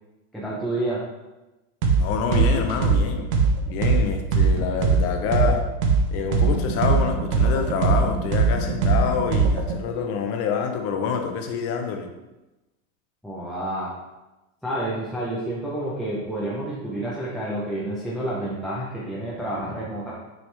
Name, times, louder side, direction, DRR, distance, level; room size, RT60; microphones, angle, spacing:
voice 1, 0.3-1.0 13.2-13.9 14.6-20.1, right 1 dB, ahead, -8 dB, 0.5 m, -29 dB
sound 1, 1.8-2.0 2.3-6.0 6.3-9.7, right 5 dB, 65° right, 1.1 m, -20 dB
voice 2, 2.0-3.3 3.7-5.6 6.1-12.1, left 6 dB, 35° left, 5 dB, 0.7 m, -27 dB
6.2 x 4.8 x 3.2 m, 1.0 s
supercardioid pair, 155°, 42 cm